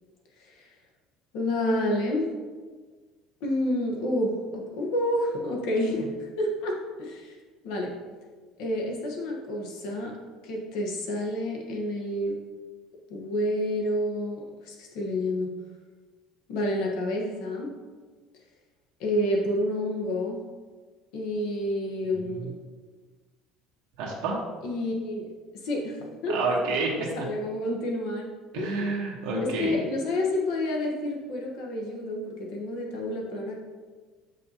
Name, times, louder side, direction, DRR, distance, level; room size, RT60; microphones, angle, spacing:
voice 1, 1.3-2.3 3.4-7.3 7.6-7.9 8.6-10.1 10.4-12.4 13.1-15.5 16.5-17.7 19.0-20.4 21.1-22.5 24.6-25.3 25.6-26.6 27.2-28.3 28.5-28.9 29.4-33.6, left 1 dB, 65° left, 0 dB, 1.2 m, -29 dB
voice 2, 22.0-22.5 24.0-24.4 26.3-26.9 27.2-27.3 28.5-29.8, right 3 dB, 75° right, -3 dB, 1.2 m, -29 dB
7.1 x 5.2 x 2.8 m, 1.4 s
cardioid pair, 180°, 0 cm